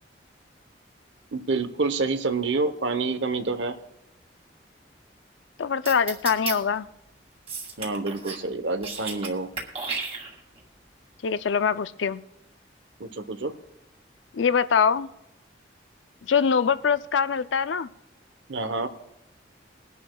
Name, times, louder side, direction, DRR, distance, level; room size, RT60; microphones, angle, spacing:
voice 1, 1.3-3.7 7.8-9.5 13.0-13.5 18.5-18.9, right 3 dB, 80° right, 10 dB, 1.0 m, -27 dB
voice 2, 5.6-6.9 11.2-12.2 14.3-15.1 16.2-17.9, left 6 dB, 90° left, 13 dB, 0.5 m, -23 dB
sound 1, 5.9-6.5 7.5-8.4 8.7-9.3 9.6-10.6, right 5 dB, 30° right, 2.4 m, -33 dB
22.0 x 11.0 x 2.3 m, 0.88 s
head